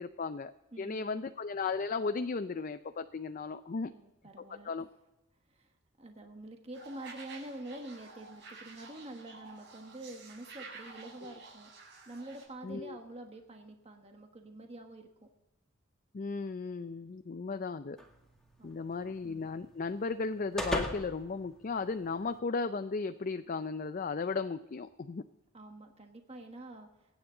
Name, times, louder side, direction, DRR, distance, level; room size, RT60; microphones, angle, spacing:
voice 1, 0.0-0.5 0.8-3.9 4.4-4.9 11.2-11.3 12.6-13.0 16.1-18.0 18.6-25.2, left 4 dB, 40° left, 10 dB, 0.4 m, -35 dB
voice 2, 0.7-1.2 3.8-4.7 5.5-5.7 6.0-11.7 12.1-15.3 18.6-19.2 25.5-26.9, right 1 dB, 30° right, 4 dB, 1.3 m, -47 dB
sound 1, 6.7-12.4, right 4 dB, 60° right, 6.4 m, -51 dB
sound 2, 18.0-22.4, equal, 5° left, 1.9 m, -41 dB
24.0 x 9.4 x 3.9 m, 0.99 s
head